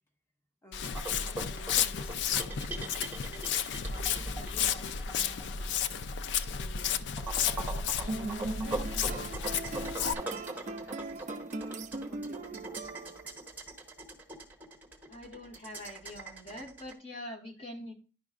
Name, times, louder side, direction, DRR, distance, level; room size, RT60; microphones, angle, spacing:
voice 1, 0.6-3.5 3.9-5.9 6.4-11.5 12.1-13.2 17.3-17.9, left 1 dB, 15° left, 2 dB, 1.2 m, -53 dB
Walk footsteps, 0.7-10.1, left 7 dB, 85° left, 0.4 m, -32 dB
sound 1, 0.8-16.9, right 2 dB, 10° right, 1.0 m, -41 dB
sound 2, 8.1-13.5, right 2 dB, 40° right, 0.4 m, -39 dB
voice 2, 15.1-17.9, left 1 dB, 35° left, 1 dB, 1.5 m, -44 dB
10.5 x 5.2 x 2.4 m, 0.36 s
head